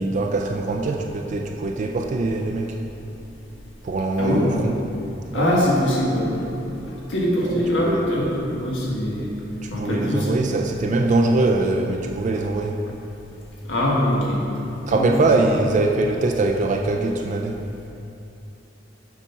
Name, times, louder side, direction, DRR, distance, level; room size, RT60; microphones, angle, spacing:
voice 1, 0.0-2.7 3.8-4.7 5.3-5.7 7.5-8.1 9.6-12.8 14.9-17.6, right 2 dB, 40° right, 2 dB, 0.4 m, -22 dB
voice 2, 5.3-6.5 6.9-9.3 9.7-10.4 13.7-14.4 14.9-15.1 15.4-15.5, left 1 dB, 85° left, -4 dB, 1.5 m, -23 dB
7.2 x 4.1 x 5.7 m, 2.8 s
head